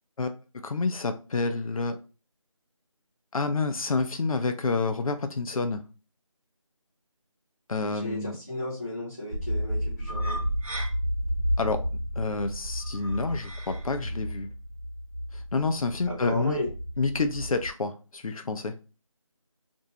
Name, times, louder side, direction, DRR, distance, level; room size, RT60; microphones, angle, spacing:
voice 1, 0.2-2.0 3.3-5.8 7.7-8.4 11.6-11.8 12.2-14.5 15.3-16.6 17.0-18.8, left 3 dB, 80° left, 8 dB, 0.4 m, -29 dB
voice 2, 8.0-10.4 16.1-16.7, left 1 dB, 30° left, -8 dB, 0.6 m, -34 dB
sound 1, 9.3-17.7, equal, 85° right, 0.9 m, -32 dB
2.6 x 2.1 x 2.7 m, 0.33 s
figure-of-eight pair, 175°, 18 cm